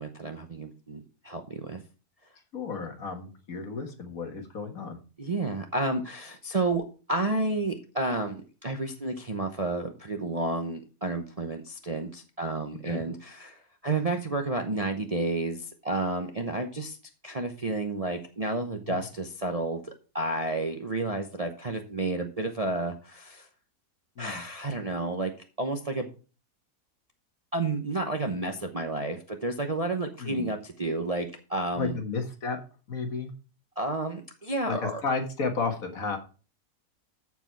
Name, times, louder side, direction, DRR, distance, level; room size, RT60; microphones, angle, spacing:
voice 1, 0.0-1.8 5.2-6.8 7.1-17.0 17.2-23.5 24.2-25.3 25.6-26.1 27.5-32.0 33.8-35.0, right 2 dB, 30° right, 4 dB, 0.7 m, -31 dB
voice 2, 2.5-5.0 12.8-13.1 18.9-19.0 24.2-24.4 30.2-30.5 31.8-32.6 32.9-33.3 34.7-36.2, left 4 dB, 60° left, 4 dB, 2.0 m, -32 dB
14.0 x 4.8 x 4.5 m, 0.36 s
omnidirectional pair, 1.7 m